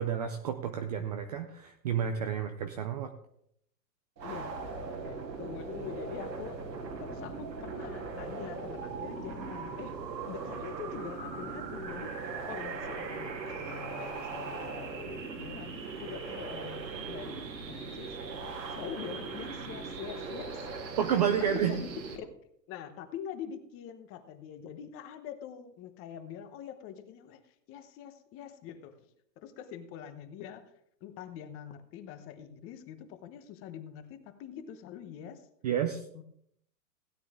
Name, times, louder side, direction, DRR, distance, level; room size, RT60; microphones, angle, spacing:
voice 1, 0.0-3.1 21.0-21.8 35.6-36.0, right 8 dB, 25° right, 7 dB, 0.4 m, -30 dB
voice 2, 4.2-4.6 5.0-6.6 7.0-9.9 10.2-20.9 21.4-22.2 22.7-29.1 29.4-30.7 31.0-35.5 36.1-36.2, left 9 dB, 25° left, 9 dB, 1.0 m, -44 dB
sound 1, 4.2-22.2, right 4 dB, 90° right, 3.0 m, -39 dB
16.5 x 9.2 x 3.7 m, 0.71 s
hypercardioid pair, 140°, 50 cm